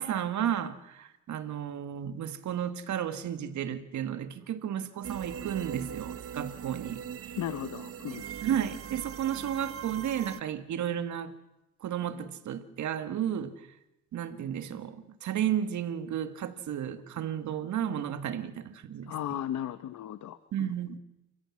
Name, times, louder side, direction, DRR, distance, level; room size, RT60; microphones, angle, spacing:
voice 1, 0.0-7.0 8.4-11.3 11.8-13.5 14.1-19.1 20.5-21.0, right 9 dB, 75° right, 10 dB, 2.0 m, -33 dB
sound 1, 5.0-10.4, right 9 dB, 50° right, 0.9 m, -40 dB
voice 2, 7.4-8.2 19.1-20.7, left 11 dB, 65° left, 13 dB, 1.0 m, -36 dB
29.0 x 16.0 x 7.4 m, 0.94 s
cardioid pair, 90°, 30 cm